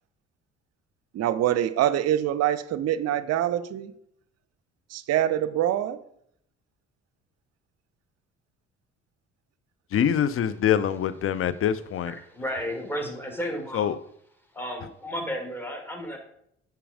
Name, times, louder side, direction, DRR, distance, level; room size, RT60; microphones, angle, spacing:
voice 1, 1.1-3.9 4.9-6.0, right 11 dB, 50° right, 0.7 m, -25 dB
voice 2, 9.9-12.1 13.7-14.0, left 9 dB, 40° left, 0.6 m, -24 dB
voice 3, 12.0-13.9 14.5-16.2, equal, 5° left, 2.1 m, -33 dB
10.0 x 4.7 x 5.0 m
figure-of-eight pair, 50°, 34 cm